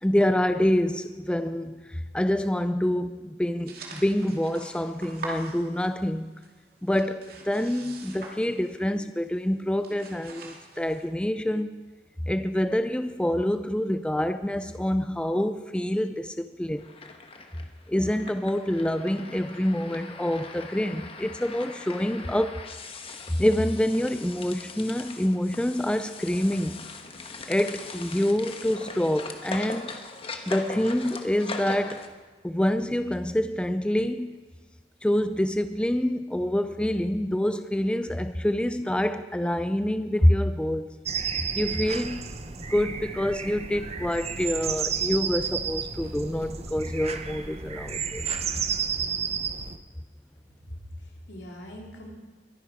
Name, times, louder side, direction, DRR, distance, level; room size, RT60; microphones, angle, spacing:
voice 1, 0.0-6.3 6.8-11.8 12.3-16.9 17.9-22.6 23.1-26.8 27.5-29.9 30.5-32.0 32.4-34.4 35.0-41.0 41.5-42.3 42.6-48.2, left 1 dB, 5° left, 0.4 m, -26 dB
sound 1, 3.7-6.2 6.4-8.9 9.2-9.4 9.7-11.1, right 3 dB, 55° right, 2.5 m, -43 dB
sound 2, 16.8-32.1, left 3 dB, 30° left, 1.2 m, -41 dB
sound 3, 41.1-49.8, right 6 dB, 35° right, 0.8 m, -32 dB
voice 2, 50.6-52.1, equal, 70° left, 3.1 m, -42 dB
22.0 x 10.5 x 4.9 m
head